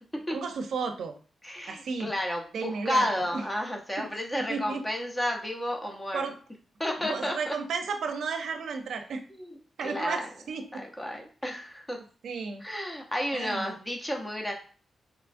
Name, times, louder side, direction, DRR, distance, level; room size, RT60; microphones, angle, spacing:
voice 1, 0.3-1.1 1.7-2.1 2.5-3.1 3.3-3.4 4.0-4.1 4.3-4.8 6.1-6.4 7.0-9.2 9.8-10.6 12.2-12.6 13.3-13.8, right 5 dB, 75° right, 6 dB, 0.5 m, -33 dB
voice 2, 1.4-6.3 6.8-7.5 9.3-9.5 9.8-10.3 10.7-12.0 12.6-14.5, left 1 dB, 10° left, 2 dB, 0.6 m, -31 dB
3.5 x 3.0 x 2.5 m, 0.39 s
wide cardioid pair, 150°, 0 cm